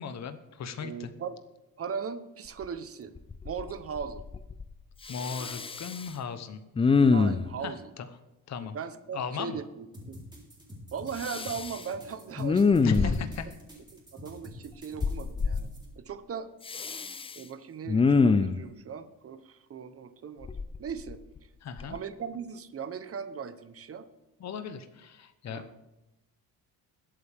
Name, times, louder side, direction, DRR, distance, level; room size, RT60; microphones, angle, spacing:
voice 1, 0.0-1.1 5.1-6.6 7.6-8.1 8.5-8.8 9.1-9.6 12.8-13.5 21.6-22.0 24.4-25.6, left 6 dB, 45° left, 9 dB, 1.0 m, -36 dB
voice 2, 0.8-1.4 1.8-3.1 3.4-4.2 7.1-7.9 8.6-10.2 10.9-13.1 14.1-15.7 16.0-16.5 16.8-17.0 17.3-20.5 20.8-21.2 21.8-24.1 25.5-25.7, right 6 dB, 35° right, 11 dB, 0.9 m, -38 dB
Respiratory sounds, 2.6-2.7 3.2-3.7 4.0-4.7 5.1-6.1 6.8-7.6 11.2-11.8 12.4-13.4 15.0-15.6 16.7-17.4 17.9-18.6 20.4-21.4 21.8-22.0, left 4 dB, 15° left, 0.3 m, -25 dB
sound 1, 9.9-15.9, equal, 10° right, 3.9 m, -47 dB
21.5 x 8.5 x 3.5 m, 0.97 s
cardioid pair, 140°, 39 cm